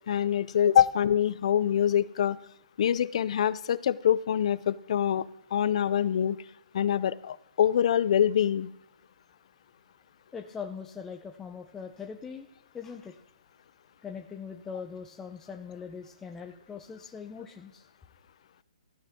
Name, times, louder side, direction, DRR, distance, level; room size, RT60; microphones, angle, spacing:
voice 1, 0.1-2.4 2.8-6.4 6.7-8.7, left 9 dB, 55° left, 18 dB, 0.6 m, -25 dB
voice 2, 10.3-12.5 12.7-13.2 14.0-17.9, left 6 dB, 10° left, 3 dB, 0.8 m, -41 dB
14.5 x 9.9 x 3.7 m, 0.80 s
hypercardioid pair, 145°, 4 cm